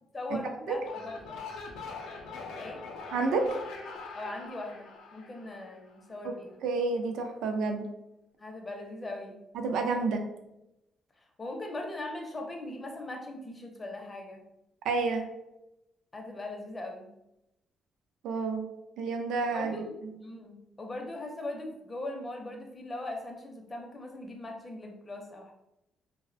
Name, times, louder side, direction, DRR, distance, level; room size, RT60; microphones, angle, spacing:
voice 1, 0.1-1.4 2.6-2.8 4.1-6.6 8.4-9.4 11.2-14.4 16.1-17.1 19.5-19.9 20.2-25.5, left 2 dB, 30° left, 3 dB, 0.5 m, -40 dB
sound 1, 0.7-6.1, left 4 dB, 90° left, 0.4 m, -43 dB
voice 2, 3.1-3.5 6.2-6.3 6.6-7.9 9.5-10.2 14.8-15.3 18.2-18.7 19.0-19.8, right 4 dB, 85° right, 4 dB, 0.3 m, -29 dB
2.4 x 2.0 x 2.5 m, 0.89 s
cardioid pair, 90°, 0 cm